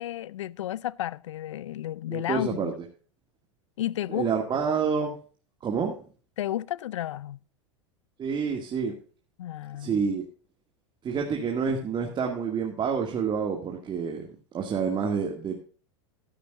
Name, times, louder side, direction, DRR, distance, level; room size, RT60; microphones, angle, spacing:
voice 1, 0.0-2.7 3.8-4.3 6.4-7.4 9.4-10.0, left 13 dB, 80° left, 0.5 m, -32 dB
voice 2, 2.1-2.7 4.1-5.1 5.6-5.9 8.2-8.9 9.8-10.2 11.0-14.3 14.5-15.6, right 6 dB, 30° right, 2.2 m, -28 dB
14.0 x 11.5 x 2.5 m
hypercardioid pair, 100°, 16 cm